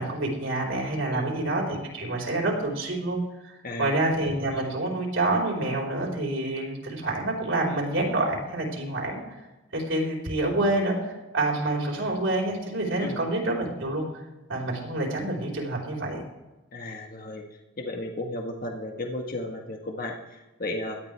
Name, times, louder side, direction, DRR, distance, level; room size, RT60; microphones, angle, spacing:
voice 1, 0.0-9.2 9.7-14.2 14.5-16.2, right 2 dB, 75° right, -2 dB, 4.2 m, -27 dB
voice 2, 3.6-4.0 13.0-13.3 16.7-17.4 17.8-21.0, left 1 dB, 45° left, 2 dB, 1.6 m, -34 dB
17.5 x 12.5 x 3.4 m, 1.0 s
head